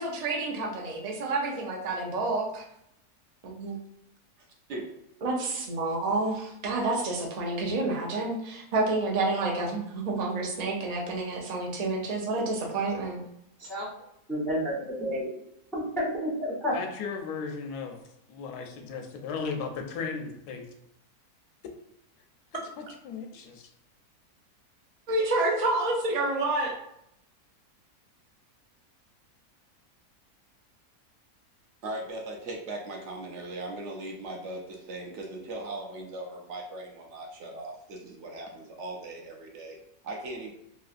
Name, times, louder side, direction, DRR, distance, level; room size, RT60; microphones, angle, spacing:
voice 1, 0.0-2.6 3.4-3.8 5.2-13.2 25.1-26.7, right 2 dB, 90° right, -1 dB, 0.3 m, -29 dB
voice 2, 14.3-15.3 15.7-16.7, equal, ahead, -7 dB, 0.5 m, -30 dB
voice 3, 16.7-18.0 18.3-20.7 22.5-23.7, left 5 dB, 90° left, 4 dB, 1.1 m, -36 dB
voice 4, 31.8-39.8 40.0-40.5, right 2 dB, 65° right, 0 dB, 0.8 m, -39 dB
3.1 x 2.7 x 2.4 m, 0.77 s
omnidirectional pair, 1.6 m